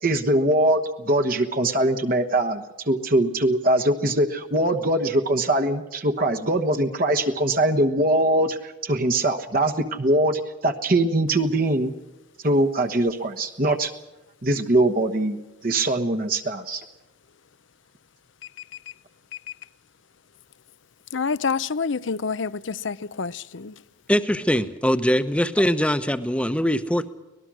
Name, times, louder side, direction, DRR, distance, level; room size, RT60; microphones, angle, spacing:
voice 1, 0.0-11.9 12.4-13.9 14.4-15.4 15.6-16.8, right 1 dB, 45° right, 1.2 m, -22 dB
voice 2, 21.1-23.8, left 5 dB, 70° left, 0.7 m, -27 dB
voice 3, 24.1-27.1, equal, 5° left, 0.9 m, -22 dB
24.5 x 19.0 x 6.3 m
head